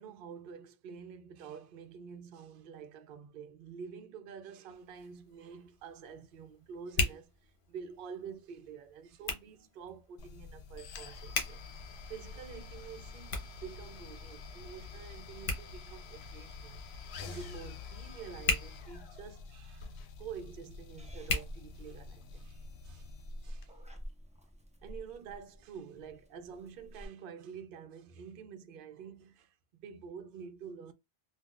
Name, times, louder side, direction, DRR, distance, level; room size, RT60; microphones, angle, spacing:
voice 1, 0.0-16.8 17.2-23.1 23.4-23.8 24.8-30.9, right 7 dB, 65° right, 0.7 m, -48 dB
Hands, 4.7-22.4, left 3 dB, 55° left, 1.0 m, -41 dB
sound 1, 10.2-23.7, left 4 dB, 80° left, 0.8 m, -48 dB
Purr / Meow, 21.0-27.1, equal, 10° right, 0.3 m, -49 dB
3.6 x 2.2 x 2.4 m
omnidirectional pair, 1.1 m